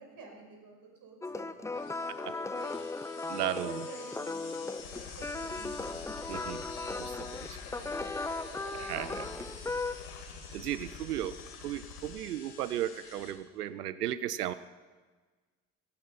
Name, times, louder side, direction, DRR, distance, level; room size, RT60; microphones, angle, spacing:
voice 1, 0.0-2.7 3.0-3.2 3.6-9.9 10.3-10.6, right 4 dB, 50° right, 1 dB, 5.3 m, -51 dB
sound 1, 1.2-9.9, left 3 dB, 5° left, 0.5 m, -37 dB
sound 2, 1.7-13.3, left 6 dB, 55° left, 3.0 m, -49 dB
voice 2, 3.3-3.8 6.3-6.6 7.0-7.1 8.7-9.3 10.5-11.4 11.6-14.5, right 12 dB, 85° right, 16 dB, 0.6 m, -35 dB
sound 3, 4.8-12.2, left 5 dB, 75° left, 1.8 m, -48 dB
16.5 x 13.0 x 5.5 m, 1.4 s
hypercardioid pair, 55°, 45 cm